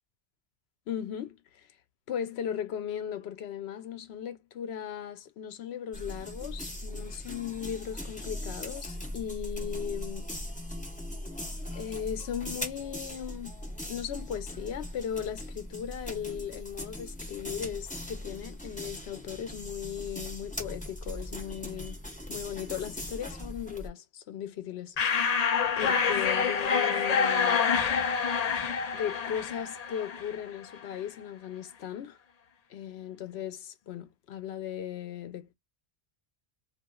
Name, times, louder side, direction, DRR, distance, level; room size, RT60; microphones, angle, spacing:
voice 1, 0.9-1.7 2.1-10.3 11.7-13.6 13.9-22.0 22.3-25.0 25.8-27.7 28.9-32.2 32.7-35.5, left 9 dB, 85° left, 0.9 m, -37 dB
sound 1, 5.9-23.9, left 1 dB, 10° left, 0.8 m, -40 dB
sound 2, 25.0-30.5, left 6 dB, 50° left, 0.6 m, -27 dB
2.9 x 2.5 x 2.2 m
omnidirectional pair, 1.1 m